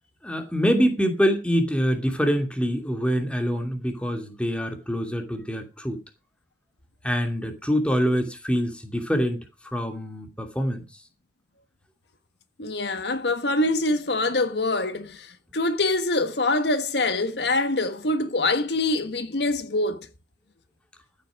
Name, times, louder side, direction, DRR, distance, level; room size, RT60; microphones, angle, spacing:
voice 1, 0.2-6.0 7.0-9.4 9.7-10.8, equal, 5° left, 2.6 m, -25 dB
voice 2, 12.6-20.1, left 2 dB, 75° left, 1.5 m, -25 dB
14.5 x 8.9 x 6.0 m
head